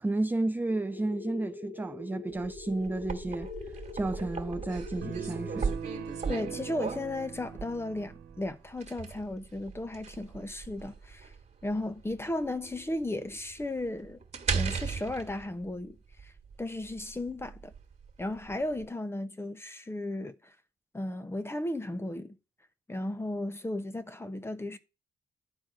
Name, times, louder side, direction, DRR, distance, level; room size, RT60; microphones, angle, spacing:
voice 1, 0.0-5.7, right 2 dB, 10° right, 0.4 m, -32 dB
sound 1, 0.7-5.7, left 5 dB, 65° left, 3.0 m, -43 dB
sound 2, 2.4-18.9, right 5 dB, 40° right, 1.8 m, -38 dB
sound 3, 5.0-8.6, right 7 dB, 80° right, 1.2 m, -41 dB
voice 2, 6.3-11.3 11.6-14.2 14.5-16.3 16.6-17.7 18.2-20.5 20.9-22.3 22.9-24.8, left 1 dB, 15° left, 1.0 m, -35 dB
10.5 x 4.3 x 6.3 m
cardioid pair, 100°, 18 cm